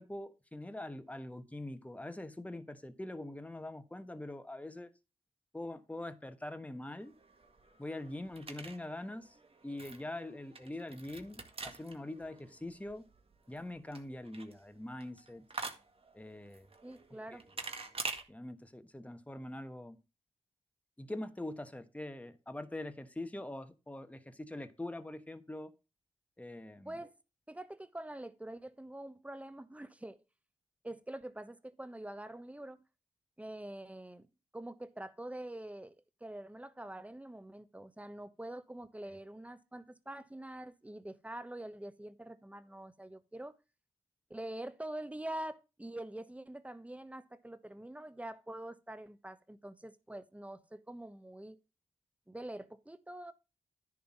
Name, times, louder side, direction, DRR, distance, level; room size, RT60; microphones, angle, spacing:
voice 1, 0.0-4.9 5.5-7.1 7.8-9.4 9.6-13.1 13.5-15.4 16.1-16.7 17.3-17.4 18.3-20.0 21.0-25.7 26.4-27.0, left 1 dB, 10° left, 1.2 m, -43 dB
sound 1, 7.0-18.2, right 3 dB, 45° right, 1.8 m, -47 dB
voice 2, 16.8-17.4 26.8-27.1 27.5-30.2 30.8-32.8 33.4-34.3 34.5-35.9 36.2-43.5 44.3-51.6 52.3-53.3, right 1 dB, 10° right, 1.1 m, -45 dB
10.5 x 3.6 x 7.2 m
cardioid pair, 50°, 14 cm